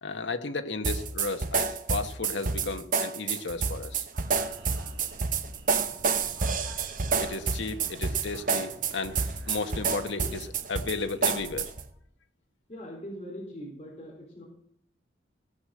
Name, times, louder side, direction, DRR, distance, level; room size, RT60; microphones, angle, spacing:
voice 1, 0.0-4.1 7.2-11.7, left 3 dB, 80° left, 8 dB, 1.1 m, -34 dB
sound 1, 0.8-11.9, right 5 dB, 45° right, 0.9 m, -29 dB
sound 2, 4.1-11.7, right 1 dB, 70° right, 1.9 m, -49 dB
voice 2, 12.7-14.4, equal, 35° left, -3 dB, 4.0 m, -41 dB
17.0 x 6.5 x 7.7 m, 0.66 s
head